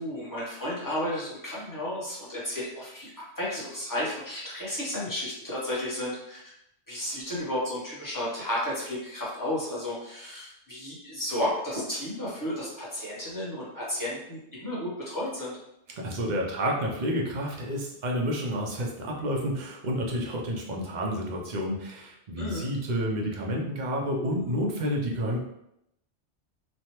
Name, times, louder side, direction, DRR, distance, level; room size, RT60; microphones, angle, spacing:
voice 1, 0.0-3.1 3.4-6.4 6.9-15.6 22.4-22.7, left 1 dB, 20° left, -7 dB, 0.9 m, -32 dB
voice 2, 15.9-25.4, equal, 50° right, -1 dB, 0.6 m, -30 dB
3.1 x 2.2 x 2.9 m, 0.80 s
omnidirectional pair, 1.2 m